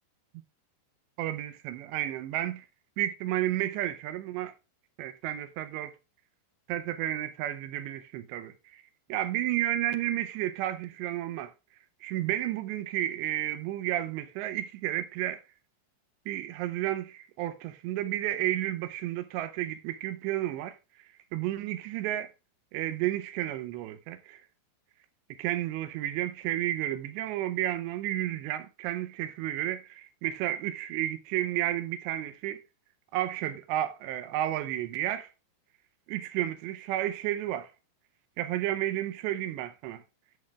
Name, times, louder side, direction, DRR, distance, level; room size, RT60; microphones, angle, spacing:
voice 1, 1.2-2.7 3.0-4.5 5.0-6.0 6.7-8.8 9.1-11.5 12.0-15.4 16.3-22.3 22.7-24.4 25.3-32.6 33.1-35.3 36.1-37.7 38.4-40.0, right 13 dB, 80° right, 2.8 m, -32 dB
10.5 x 9.5 x 2.3 m
omnidirectional pair, 5.1 m